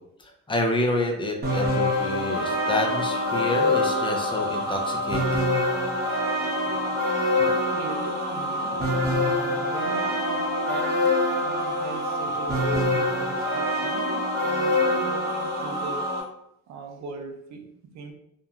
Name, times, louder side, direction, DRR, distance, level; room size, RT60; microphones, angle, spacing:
voice 1, 0.2-5.2, left 1 dB, 15° left, 2 dB, 0.5 m, -28 dB
sound 1, 1.4-16.2, left 1 dB, 30° right, 0.9 m, -25 dB
voice 2, 7.4-11.1 11.4-16.1 16.7-18.1, right 4 dB, 65° right, 4 dB, 0.5 m, -39 dB
3.0 x 2.2 x 2.4 m, 0.78 s
cardioid pair, 90°, 30 cm